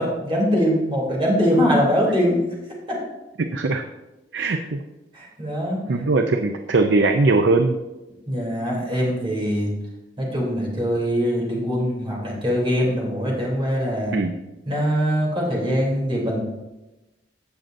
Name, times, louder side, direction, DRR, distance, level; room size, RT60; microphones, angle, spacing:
voice 1, 0.0-2.4 2.9-3.0 4.4-4.6 5.1-5.8 8.3-9.7 10.2-14.1 14.7-16.4, equal, 30° right, -3 dB, 3.1 m, -22 dB
voice 2, 3.5-3.8 4.3-4.8 5.9-7.8 14.1-14.3, right 3 dB, 70° right, 6 dB, 0.6 m, -20 dB
16.0 x 6.6 x 2.6 m, 1.0 s
head